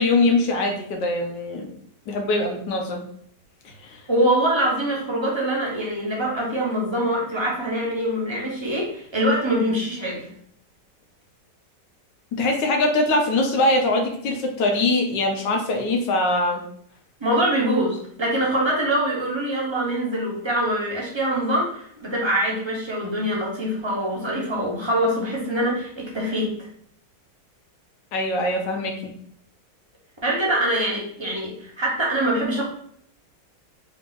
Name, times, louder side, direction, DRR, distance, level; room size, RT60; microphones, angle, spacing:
voice 1, 0.0-1.7 2.1-3.0 3.6-4.0 12.3-16.6 28.1-29.1, left 2 dB, 80° left, 3 dB, 1.4 m, -22 dB
voice 2, 4.1-10.3 17.2-26.7 30.2-32.6, right 1 dB, 30° right, -4 dB, 0.5 m, -24 dB
3.8 x 2.4 x 3.8 m, 0.65 s
omnidirectional pair, 1.9 m